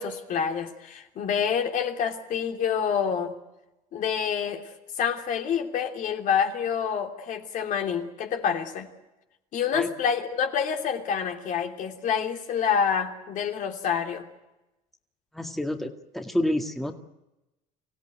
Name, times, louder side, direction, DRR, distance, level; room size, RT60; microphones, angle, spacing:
voice 1, 0.0-3.4 3.9-4.7 5.0-8.9 9.5-14.3, left 7 dB, 55° left, 4 dB, 3.1 m, -27 dB
voice 2, 15.3-16.9, left 1 dB, ahead, 4 dB, 2.1 m, -28 dB
25.5 x 17.0 x 9.3 m, 0.96 s
cardioid pair, 105°, 15 cm